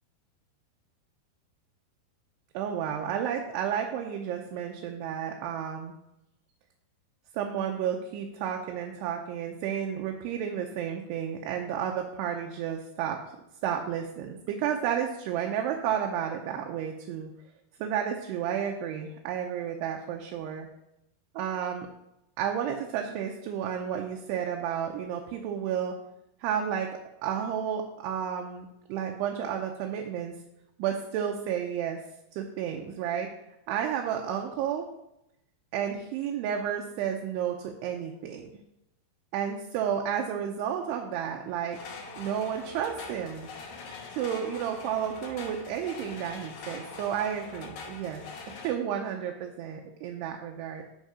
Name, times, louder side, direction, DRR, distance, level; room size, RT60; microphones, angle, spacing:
voice 1, 2.5-5.9 7.3-13.2 13.6-17.3 17.8-20.7 21.4-21.9 22.4-25.9 26.4-26.9 27.2-30.3 30.8-32.0 32.3-33.3 33.7-34.9 35.7-38.5 39.3-41.8 42.2-43.5 44.1-48.3 48.6-50.8, right 9 dB, 80° right, 2 dB, 2.7 m, -31 dB
sound 1, 41.7-48.7, left 4 dB, 70° left, 1.8 m, -43 dB
11.0 x 3.7 x 4.9 m, 0.86 s
omnidirectional pair, 4.7 m